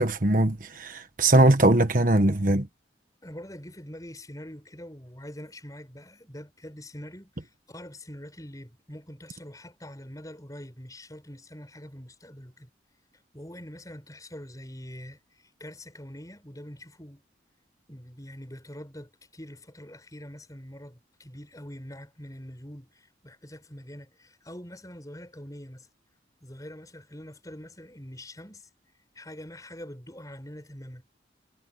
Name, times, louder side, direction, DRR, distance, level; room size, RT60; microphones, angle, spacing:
voice 1, 0.0-2.7, right 1 dB, 45° right, 1.5 m, -21 dB
voice 2, 3.2-12.7 13.3-17.2 17.9-25.9 26.4-28.7 29.1-31.1, equal, 20° left, 6.9 m, -44 dB
head